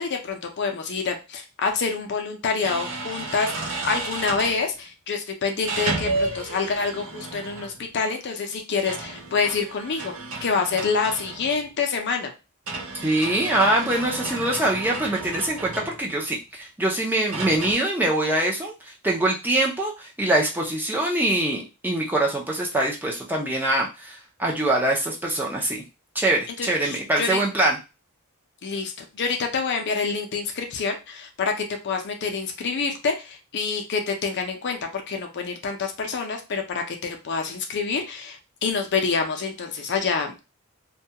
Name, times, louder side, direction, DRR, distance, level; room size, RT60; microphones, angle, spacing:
voice 1, 0.0-10.1 10.4-12.3 26.6-27.4 28.6-31.5 31.8-40.4, left 5 dB, 50° left, 4 dB, 0.5 m, -27 dB
sound 1, 1.7-1.8 2.6-4.6 5.6-7.9 8.7-11.7 12.7-16.2 17.3-17.7, right 3 dB, 70° right, 0.6 m, -32 dB
voice 2, 13.0-25.8 26.1-27.8, right 1 dB, 10° right, -2 dB, 0.5 m, -24 dB
2.2 x 2.2 x 2.8 m, 0.28 s
head